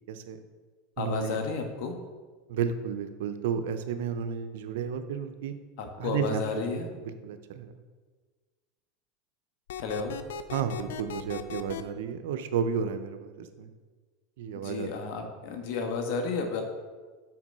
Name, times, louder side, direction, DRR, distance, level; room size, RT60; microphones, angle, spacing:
voice 1, 0.1-0.4 1.0-1.4 2.5-5.5 6.0-7.7 10.5-13.7 14.4-14.9, right 7 dB, 80° right, 9 dB, 0.6 m, -32 dB
voice 2, 1.0-2.0 5.8-6.9 9.8-10.2 14.5-16.6, left 4 dB, 65° left, 4 dB, 1.3 m, -32 dB
sound 1, 9.7-11.8, left 7 dB, 90° left, 0.4 m, -37 dB
5.9 x 4.7 x 5.3 m, 1.4 s
supercardioid pair, 125°, 0 cm